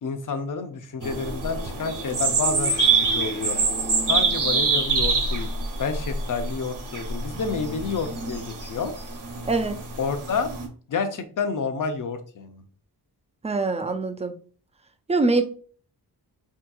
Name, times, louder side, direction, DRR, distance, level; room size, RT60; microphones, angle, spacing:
voice 1, 0.0-2.7 3.0-3.6 4.0-5.5 5.8-8.9 10.0-10.5 10.9-12.6, left 5 dB, 50° left, 0.5 m, -29 dB
sound 1, 1.0-10.7, right 4 dB, 50° right, 0.8 m, -26 dB
voice 2, 9.4-9.8 13.4-14.4 15.1-15.4, right 3 dB, 20° right, 0.3 m, -23 dB
3.4 x 2.8 x 2.3 m
wide cardioid pair, 90°, 40 cm